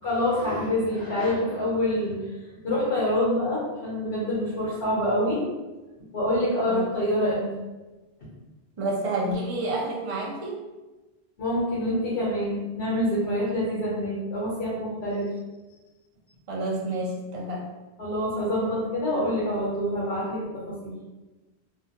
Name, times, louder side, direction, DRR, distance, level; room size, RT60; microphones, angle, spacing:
voice 1, 0.0-2.2 2.6-5.4 6.1-7.5 11.4-15.3 18.0-20.9, left 1 dB, 80° left, -8 dB, 1.1 m, -26 dB
voice 2, 8.8-10.6 16.5-17.7, right 2 dB, 40° right, -3 dB, 0.6 m, -29 dB
2.7 x 2.2 x 2.8 m, 1.1 s
omnidirectional pair, 1.1 m